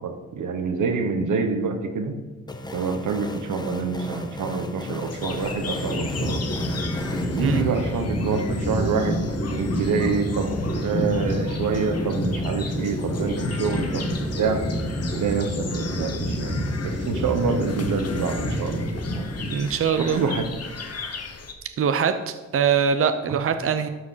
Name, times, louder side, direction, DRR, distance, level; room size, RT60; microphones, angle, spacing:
voice 1, 0.0-2.2 2.7-6.5 7.3-9.2 9.5-14.1 14.4-14.6 15.2-18.9 20.0-20.5 23.3-23.4, right 5 dB, 90° right, 6 dB, 1.2 m, -26 dB
sound 1, 2.5-7.6, left 1 dB, 15° left, 0.9 m, -35 dB
sound 2, 5.0-21.5, left 4 dB, 55° left, 1.2 m, -38 dB
sound 3, 5.5-19.8, equal, 30° left, 2.0 m, -28 dB
voice 2, 19.5-20.2 21.8-22.1 22.5-23.9, right 7 dB, 50° right, 9 dB, 0.6 m, -22 dB
12.5 x 4.8 x 5.8 m, 1.2 s
cardioid pair, 100°, 30 cm